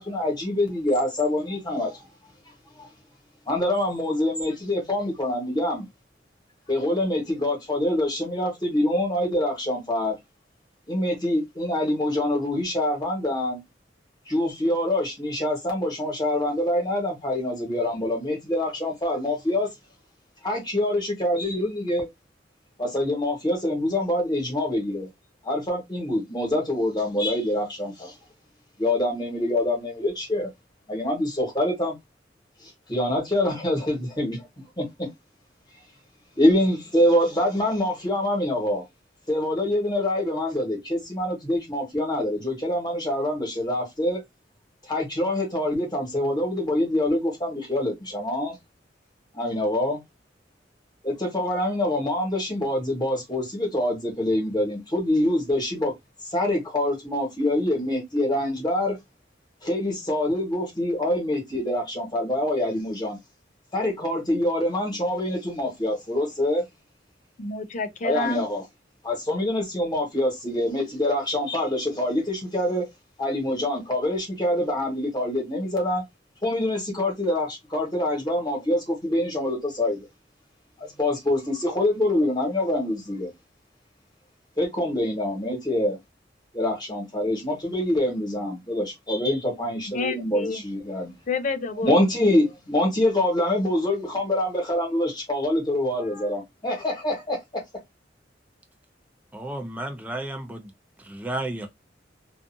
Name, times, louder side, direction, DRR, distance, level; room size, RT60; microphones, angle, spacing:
voice 1, 0.0-2.1 2.8-2.9 3.5-5.8 6.7-10.1 10.9-13.6 14.3-19.7 20.4-22.1 22.8-25.1 25.4-28.1 28.8-30.5 30.9-31.9 32.6-34.4 34.8-35.1 36.4-38.8 39.3-44.2 44.9-48.6 49.3-50.0 51.0-55.9 56.3-59.0 59.6-63.2 63.7-66.6 68.0-68.6 69.0-72.8 73.2-76.0 76.4-80.1 80.8-83.3 84.6-86.0 86.5-91.1 91.8-97.6, left 1 dB, 25° left, 1.2 m, -25 dB
voice 2, 67.4-68.5 89.9-90.6 91.3-92.0, left 4 dB, 45° left, 0.5 m, -29 dB
voice 3, 99.3-100.7 101.0-101.7, right 1 dB, 10° right, 0.5 m, -32 dB
2.5 x 2.4 x 2.6 m
head